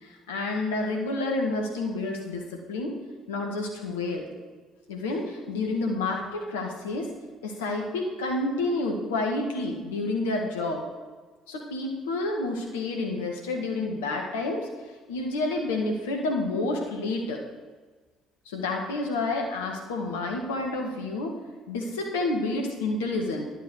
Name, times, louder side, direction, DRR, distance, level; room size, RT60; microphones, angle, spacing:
voice 1, 0.0-2.9 3.3-4.3 4.9-7.1 7.4-10.8 11.5-14.7 15.1-17.4 18.4-21.3 21.7-23.5, left 2 dB, 75° left, 2 dB, 1.8 m, -29 dB
11.5 x 7.0 x 6.4 m, 1.4 s
figure-of-eight pair, 50°, 0 cm